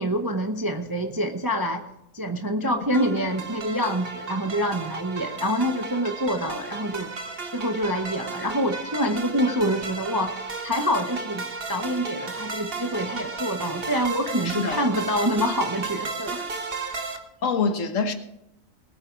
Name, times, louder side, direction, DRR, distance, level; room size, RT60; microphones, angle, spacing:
voice 1, 0.0-1.8 2.1-7.1 7.5-16.5, equal, 20° right, 4 dB, 0.7 m, -26 dB
sound 1, 2.9-17.2, right 4 dB, 40° right, 1.4 m, -34 dB
voice 2, 14.4-14.9 17.4-18.1, left 5 dB, 55° left, 7 dB, 1.5 m, -25 dB
19.5 x 8.9 x 4.6 m, 0.83 s
omnidirectional pair, 1.7 m